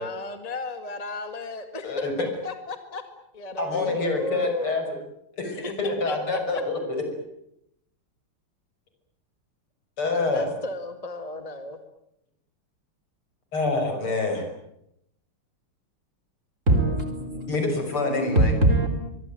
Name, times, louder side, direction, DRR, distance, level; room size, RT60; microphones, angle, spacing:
voice 1, 0.0-3.0 3.3-4.8 5.5-6.6 10.1-11.8, left 2 dB, 20° left, 1.9 m, -34 dB
voice 2, 1.8-2.3 3.6-4.8 5.4-7.0 10.0-10.5 13.5-14.4 17.5-18.5, left 3 dB, 85° left, 6.8 m, -26 dB
voice 3, 16.7-17.6 17.9-18.9, right 1 dB, 35° right, 4.6 m, -22 dB
24.5 x 23.0 x 9.2 m
omnidirectional pair, 2.3 m